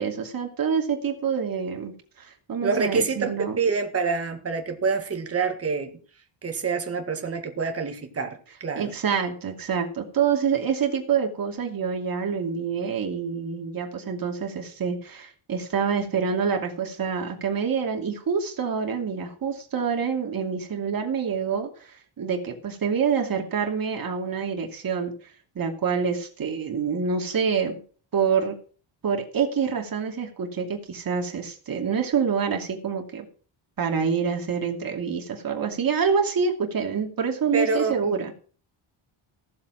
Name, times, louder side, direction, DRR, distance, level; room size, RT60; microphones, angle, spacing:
voice 1, 0.0-3.6 8.8-25.1 25.5-27.8 28.1-28.6 29.0-33.3 33.8-38.3, right 6 dB, 45° right, 2.7 m, -26 dB
voice 2, 2.6-5.9 6.4-8.9 37.5-38.0, right 4 dB, 30° right, 1.9 m, -26 dB
16.0 x 7.3 x 6.3 m
wide cardioid pair, 180°, 50 cm